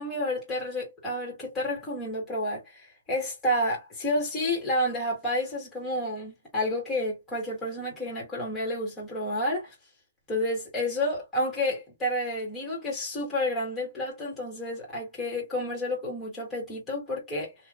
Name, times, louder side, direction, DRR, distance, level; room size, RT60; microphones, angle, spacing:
voice 1, 0.0-9.7 10.3-17.5, left 1 dB, 10° left, 1.5 m, -30 dB
3.1 x 2.5 x 2.5 m
hypercardioid pair, 165°, 0 cm